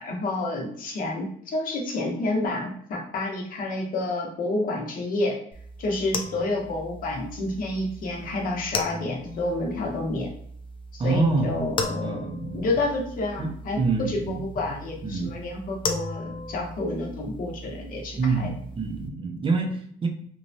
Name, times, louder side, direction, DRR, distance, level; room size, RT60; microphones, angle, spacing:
voice 1, 0.0-5.4 5.8-10.3 10.9-12.2 12.5-18.5, left 2 dB, 55° left, 0 dB, 0.9 m, -29 dB
sound 1, 5.5-19.1, left 2 dB, 30° left, 0.4 m, -37 dB
voice 2, 11.0-11.5 12.0-12.6 13.4-14.4 15.0-15.3 18.2-20.1, right 3 dB, 30° right, 2 dB, 0.5 m, -26 dB
3.1 x 2.2 x 2.6 m, 0.64 s
cardioid pair, 110°, 17 cm